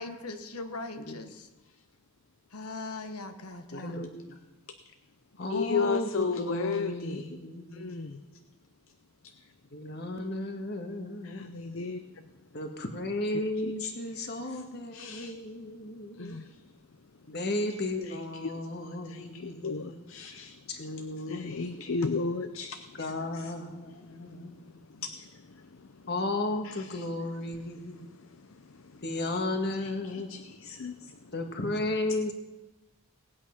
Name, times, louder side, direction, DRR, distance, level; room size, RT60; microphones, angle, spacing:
voice 1, 0.0-1.5 2.5-4.0 5.4-5.9, left 2 dB, 85° left, 7 dB, 1.2 m, -40 dB
voice 2, 3.7-4.4 5.4-8.3 9.7-11.5 12.5-16.4 17.3-20.0 20.7-21.4 23.0-25.0 26.1-28.1 29.0-30.3 31.3-32.3, left 2 dB, 45° left, 5 dB, 1.6 m, -34 dB
voice 3, 5.5-7.3 7.7-8.2 11.2-12.3 13.6-14.6 14.9-15.4 16.1-16.7 17.2-17.3 18.0-20.9 21.3-23.5 23.8-26.1 26.6-27.1 27.9-29.0 29.8-31.3, left 4 dB, 60° left, 9 dB, 0.6 m, -36 dB
18.5 x 8.7 x 5.8 m, 1.0 s
head